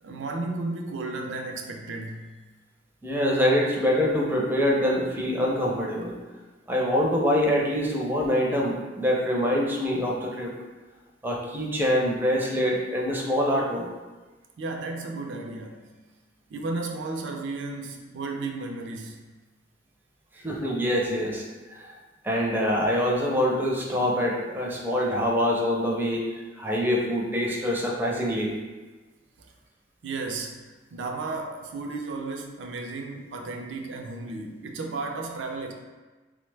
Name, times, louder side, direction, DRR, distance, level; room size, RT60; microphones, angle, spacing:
voice 1, 0.0-2.4 14.6-15.9 16.5-19.2 30.0-30.6 30.9-35.7, right 3 dB, 85° right, 2 dB, 0.4 m, -33 dB
voice 2, 3.0-6.2 6.7-10.5 11.2-13.9 20.4-21.4 21.7-21.9 22.2-26.2 26.6-28.5, equal, 10° right, -2 dB, 0.4 m, -25 dB
3.1 x 2.1 x 3.3 m, 1.2 s
head